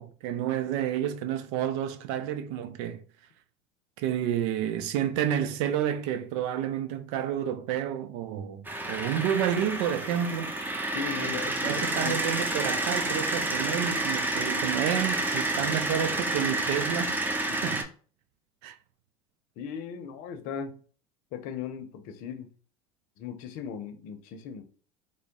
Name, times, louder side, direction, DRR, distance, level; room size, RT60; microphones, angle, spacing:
voice 1, 0.0-3.0 4.0-10.5 11.2-11.3 11.6-17.2 17.6-17.9 18.6-18.8, right 10 dB, 70° right, 0.5 m, -30 dB
sound 1, 8.7-17.8, right 2 dB, 10° right, 0.6 m, -29 dB
voice 2, 10.9-12.2 17.5-17.6 19.6-20.8 21.3-22.5 23.2-24.6, left 7 dB, 65° left, 0.7 m, -37 dB
3.8 x 2.1 x 3.5 m
supercardioid pair, 95°, 15 cm